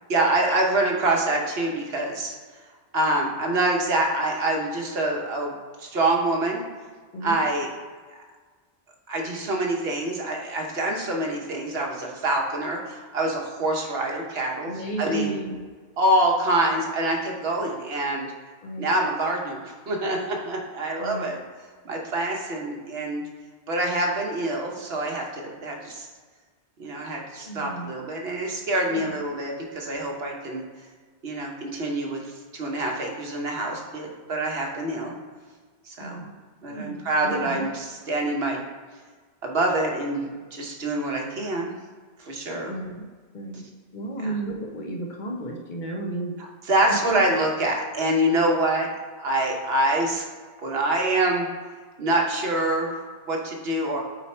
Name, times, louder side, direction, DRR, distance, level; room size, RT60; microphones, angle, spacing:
voice 1, 0.1-2.3 2.9-6.6 7.2-7.7 9.1-15.4 16.0-18.3 18.8-21.4 21.8-23.2 23.7-26.1 26.8-30.6 31.2-32.2 32.5-35.1 35.8-36.2 36.6-38.6 39.4-41.7 42.2-42.7 44.2-44.3 46.4-48.9 49.2-50.2 50.6-51.5 52.0-54.0, right 1 dB, 60° right, 0 dB, 1.2 m, -26 dB
voice 2, 14.7-15.6 18.6-18.9 21.0-21.3 27.4-28.0 28.9-29.2 36.0-36.3 36.7-37.0 37.2-37.7 42.7-43.0 43.3-43.6 43.9-46.3 46.9-47.2, right 2 dB, 45° left, 0 dB, 0.9 m, -33 dB
5.1 x 4.3 x 4.2 m, 1.5 s
omnidirectional pair, 1.2 m